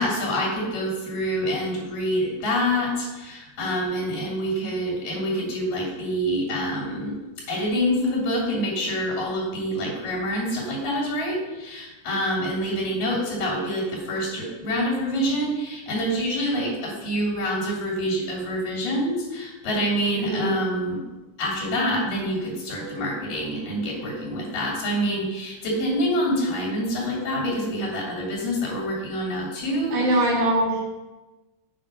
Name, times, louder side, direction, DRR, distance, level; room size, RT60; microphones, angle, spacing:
voice 1, 0.0-7.2 7.5-21.0 21.4-30.3, equal, 85° left, -3 dB, 4.5 m, -26 dB
voice 2, 20.2-20.5 29.9-30.8, right 1 dB, 60° right, -3 dB, 3.1 m, -22 dB
7.7 x 6.4 x 5.5 m, 1.1 s
omnidirectional pair, 3.8 m